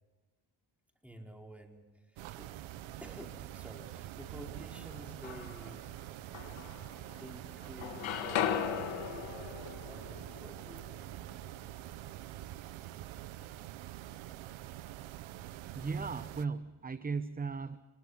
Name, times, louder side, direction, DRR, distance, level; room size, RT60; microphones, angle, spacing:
voice 1, 1.0-2.5 3.0-5.8 7.1-10.9, equal, 5° right, 1 dB, 4.5 m, -50 dB
sound 1, 2.2-16.4, right 13 dB, 90° right, 0.9 m, -46 dB
sound 2, 4.9-5.8 6.3-7.4 7.6-11.6, left 9 dB, 80° left, 2.3 m, -38 dB
voice 2, 15.8-17.8, right 4 dB, 20° right, 13 dB, 0.8 m, -36 dB
27.0 x 22.0 x 5.8 m, 1.2 s
cardioid pair, 95°, 46 cm